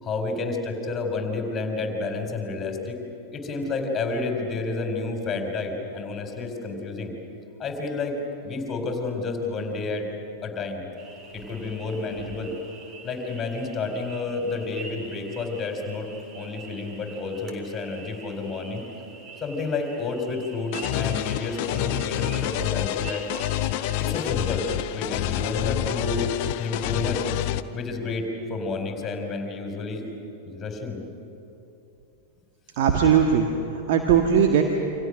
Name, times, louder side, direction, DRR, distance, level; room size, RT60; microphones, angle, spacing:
voice 1, 0.0-3.0 3.3-7.1 7.6-10.1 10.4-10.8 11.3-12.5 13.0-16.1 16.3-18.8 19.4-23.3 24.0-24.7 24.9-26.3 26.6-27.2 27.7-30.1 30.5-31.0, left 3 dB, 20° left, 3 dB, 4.5 m, -30 dB
sound 1, 11.0-24.8, right 3 dB, 30° right, 3.6 m, -45 dB
sound 2, 20.7-27.6, left 12 dB, 45° left, 0.8 m, -28 dB
voice 2, 32.8-34.6, right 7 dB, 50° right, 4 dB, 1.7 m, -20 dB
29.0 x 25.5 x 6.6 m, 2.9 s
figure-of-eight pair, 90°, 0 cm